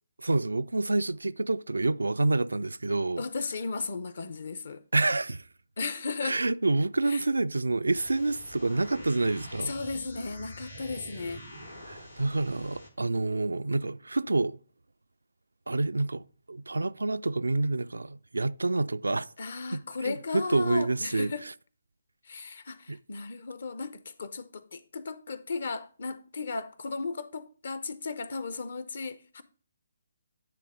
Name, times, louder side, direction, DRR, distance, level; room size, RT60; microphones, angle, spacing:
voice 1, 0.2-3.2 4.9-5.4 6.2-9.7 11.9-14.6 15.7-19.3 19.7-21.5 22.9-23.0, right 2 dB, 70° right, 0.3 m, -28 dB
voice 2, 3.2-4.8 5.8-6.4 7.1-7.2 9.6-11.4 19.4-21.4 22.3-29.4, left 4 dB, 50° left, 0.7 m, -35 dB
sound 1, 7.9-12.9, equal, 80° left, 2.4 m, -45 dB
10.0 x 3.5 x 4.8 m
figure-of-eight pair, 140°, 0 cm